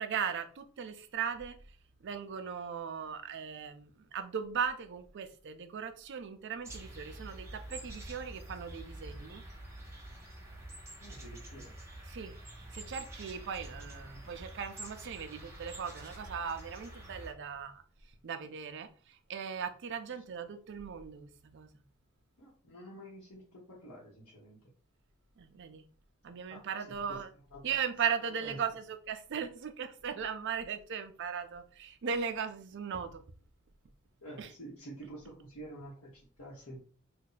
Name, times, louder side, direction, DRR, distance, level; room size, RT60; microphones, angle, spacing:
voice 1, 0.0-1.6 2.0-9.4 12.1-12.4 12.7-17.8 18.2-21.7 25.4-25.8 26.2-27.3 27.6-33.2 34.4-34.5, right 7 dB, 55° right, 0.4 m, -38 dB
sound 1, 6.6-17.3, right 1 dB, 15° right, 0.8 m, -47 dB
voice 2, 11.0-11.8 22.4-24.7 26.5-27.2 27.5-27.6 28.2-28.6 34.2-36.8, right 1 dB, 90° left, 1.1 m, -49 dB
2.7 x 2.2 x 3.9 m
head